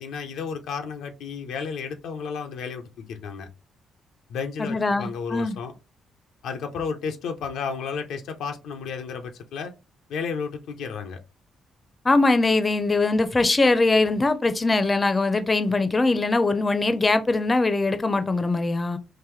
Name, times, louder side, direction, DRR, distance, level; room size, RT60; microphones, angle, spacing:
voice 1, 0.0-3.5 4.3-5.7 6.4-9.7 10.1-11.2, left 6 dB, 75° left, 0.5 m, -32 dB
voice 2, 4.6-5.6 12.0-19.0, left 3 dB, 30° left, 0.5 m, -22 dB
3.9 x 2.6 x 3.0 m
supercardioid pair, 55°, 0 cm